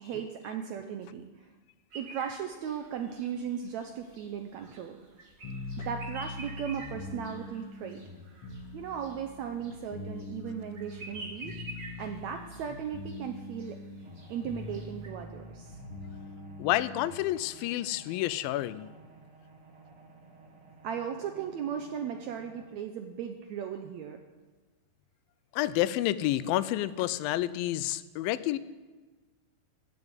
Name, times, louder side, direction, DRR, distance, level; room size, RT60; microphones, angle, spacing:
voice 1, 0.0-1.5 2.0-5.0 5.8-8.0 8.7-11.5 12.0-13.8 14.3-15.8 20.8-24.2, right 8 dB, 80° right, 5 dB, 1.7 m, -37 dB
sound 1, 1.9-15.1, right 2 dB, 30° right, 1.8 m, -49 dB
sound 2, 5.4-17.3, left 2 dB, 50° left, 2.2 m, -43 dB
sound 3, 14.0-22.7, right 3 dB, 50° right, 2.1 m, -55 dB
voice 2, 16.6-18.9 25.5-28.6, left 14 dB, 90° left, 16 dB, 2.4 m, -29 dB
16.0 x 7.1 x 8.1 m, 1.3 s
omnidirectional pair, 4.0 m